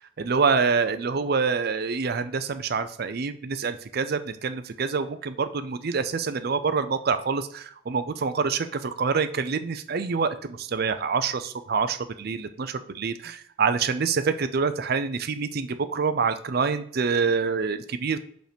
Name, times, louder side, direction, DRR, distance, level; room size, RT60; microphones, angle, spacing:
voice 1, 0.2-18.2, right 5 dB, 55° right, 10 dB, 0.5 m, -26 dB
5.2 x 4.5 x 5.0 m, 0.62 s
head